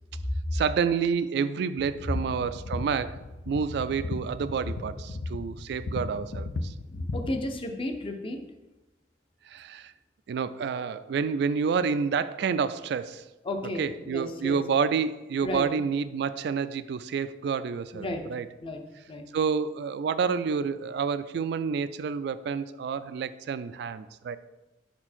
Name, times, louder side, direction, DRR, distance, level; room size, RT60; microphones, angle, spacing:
voice 1, 0.5-3.2 3.5-6.7 9.5-9.9 10.3-13.3 13.8-18.5 19.3-24.4, right 6 dB, 65° right, 14 dB, 0.3 m, -29 dB
sound 1, 1.8-7.4, left 2 dB, 80° left, 0.5 m, -35 dB
voice 2, 7.0-8.4 13.4-14.6 15.4-15.6 17.9-18.2 18.6-18.8 19.1-19.2, left 1 dB, 30° left, 5 dB, 0.6 m, -33 dB
5.3 x 4.4 x 4.3 m, 1.0 s
head